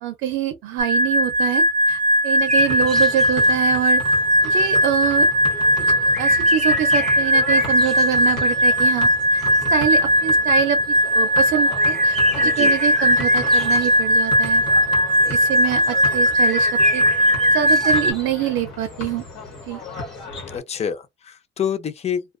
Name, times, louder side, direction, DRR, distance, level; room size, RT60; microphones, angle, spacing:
voice 1, 0.0-4.0 4.4-5.3 6.2-9.4 9.7-14.6 15.2-17.0 17.5-19.2 19.6-19.8, right 11 dB, 85° right, 0.5 m, -25 dB
sound 1, 0.8-18.1, equal, 40° right, 0.7 m, -18 dB
sound 2, 2.4-4.9 5.9-10.1 10.5-10.9 11.2-20.2, right 1 dB, 5° left, 0.9 m, -36 dB
sound 3, 2.6-20.6, left 3 dB, 75° left, 1.1 m, -36 dB
voice 2, 12.4-12.7 20.5-22.2, left 8 dB, 35° left, 0.5 m, -27 dB
2.4 x 2.2 x 2.3 m
cardioid pair, 110°, 20 cm